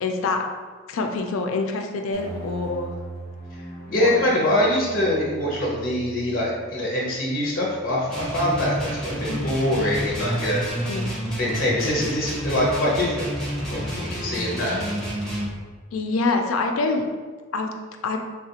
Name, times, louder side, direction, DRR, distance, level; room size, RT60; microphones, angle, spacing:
voice 1, 0.0-0.4 0.9-2.9 4.0-4.1 9.3-9.5 10.9-11.2 15.9-17.1 17.5-17.7 18.0-18.2, left 3 dB, 80° left, 4 dB, 0.4 m, -25 dB
sound 1, 2.1-8.6, right 2 dB, 30° right, 0.7 m, -40 dB
voice 2, 3.9-10.6 11.4-13.3 13.7-14.8, left 1 dB, 45° left, -4 dB, 0.7 m, -24 dB
sound 2, 8.1-15.5, equal, 5° left, 0.6 m, -29 dB
3.5 x 2.4 x 2.8 m, 1.5 s
head